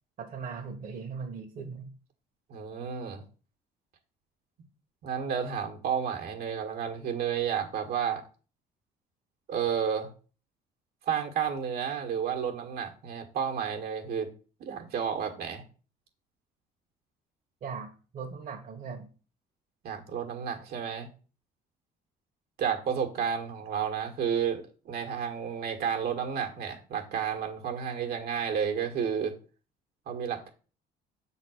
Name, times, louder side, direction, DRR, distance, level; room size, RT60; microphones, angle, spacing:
voice 1, 0.2-1.9 17.6-19.1, right 5 dB, 50° right, 1 dB, 1.4 m, -39 dB
voice 2, 2.5-3.2 5.0-8.2 9.5-10.1 11.1-14.3 14.6-15.6 19.8-21.1 22.6-29.3 30.1-30.5, right 7 dB, 70° right, 1 dB, 1.7 m, -31 dB
6.7 x 4.0 x 6.4 m, 0.37 s
cardioid pair, 110°, 17 cm